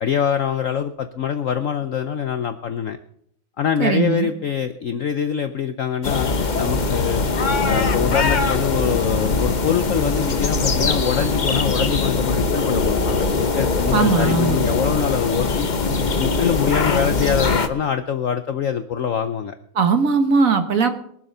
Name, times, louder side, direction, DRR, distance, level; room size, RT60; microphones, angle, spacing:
voice 1, 0.0-3.0 3.6-7.2 7.6-15.7 16.2-19.6, left 8 dB, 90° left, 9 dB, 0.7 m, -24 dB
voice 2, 3.8-4.3 13.9-14.8 19.7-20.9, right 5 dB, 45° right, 8 dB, 1.4 m, -19 dB
sound 1, 6.0-17.7, left 3 dB, 45° left, 0.5 m, -21 dB
22.0 x 7.6 x 5.5 m, 0.70 s
omnidirectional pair, 2.2 m